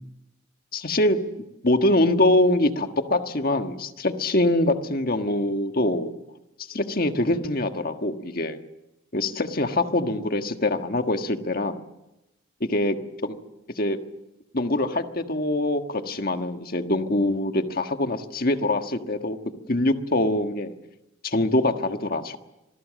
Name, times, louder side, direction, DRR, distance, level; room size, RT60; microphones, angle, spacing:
voice 1, 0.7-1.2 1.6-6.1 6.7-8.6 9.1-11.8 12.6-13.0 13.2-13.3 13.8-14.0 14.5-19.4 19.7-20.7 21.2-22.4, left 1 dB, 45° left, 6 dB, 1.5 m, -24 dB
26.5 x 19.5 x 7.6 m, 0.96 s
head